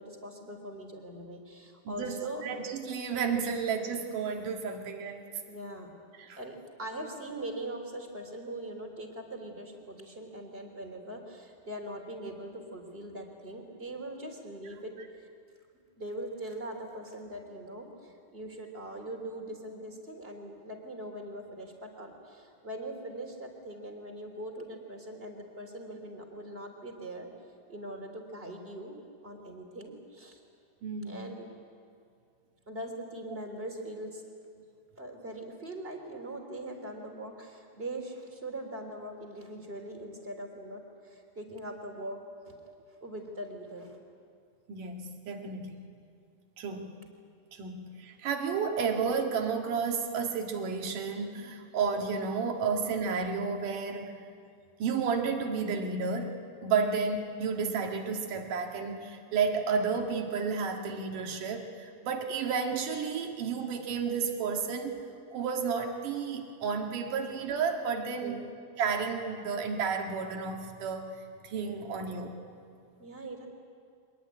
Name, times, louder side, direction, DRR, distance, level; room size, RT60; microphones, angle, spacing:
voice 1, 0.0-2.4 5.5-5.9 6.4-14.9 15.2-15.3 16.0-27.3 27.7-29.0 29.2-30.4 31.0-31.5 32.7-34.2 35.0-42.5 42.9-44.0 56.8-56.9 68.2-68.4 73.0-73.5, right 1 dB, 20° right, 3 dB, 3.0 m, -41 dB
voice 2, 1.9-5.2 6.2-6.4 30.8-31.2 34.6-34.7 42.6-42.7 44.7-45.8 46.6-47.0 47.5-54.2 54.8-65.0 65.3-68.4 68.8-72.4, right 5 dB, 80° right, 3 dB, 3.5 m, -32 dB
24.0 x 20.0 x 10.0 m, 2.3 s
omnidirectional pair, 3.7 m